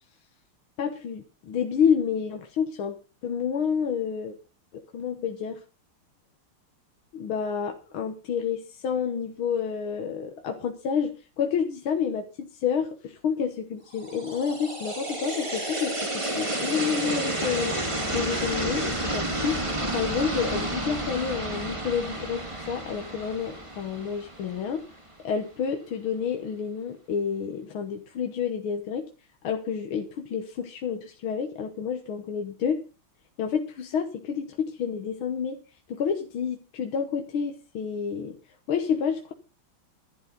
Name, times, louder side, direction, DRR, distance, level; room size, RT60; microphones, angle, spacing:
voice 1, 0.8-3.0 3.2-4.3 4.7-5.6 7.1-17.8 18.1-19.7 19.9-24.8 25.2-29.1 29.4-32.8 33.4-35.6 35.9-38.4 38.7-39.3, left 7 dB, 75° left, 4 dB, 2.0 m, -29 dB
sound 1, 14.0-25.0, right 1 dB, 15° right, 2.0 m, -31 dB
11.5 x 11.0 x 5.3 m, 0.34 s
omnidirectional pair, 2.3 m